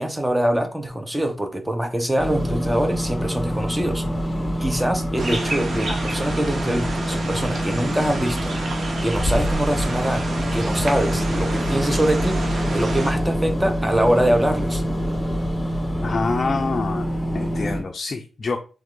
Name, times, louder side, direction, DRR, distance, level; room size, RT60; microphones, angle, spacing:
voice 1, 0.0-4.1 4.6-8.6 9.0-12.4 12.7-14.8, right 1 dB, 10° right, 6 dB, 0.7 m, -24 dB
sound 1, 2.2-17.8, equal, 15° left, 0.9 m, -25 dB
sound 2, 5.2-13.1, right 2 dB, 55° right, 0.8 m, -31 dB
voice 2, 16.0-18.6, left 4 dB, 40° left, 4 dB, 0.4 m, -26 dB
3.5 x 3.3 x 3.7 m, 0.36 s
cardioid pair, 95°, 0 cm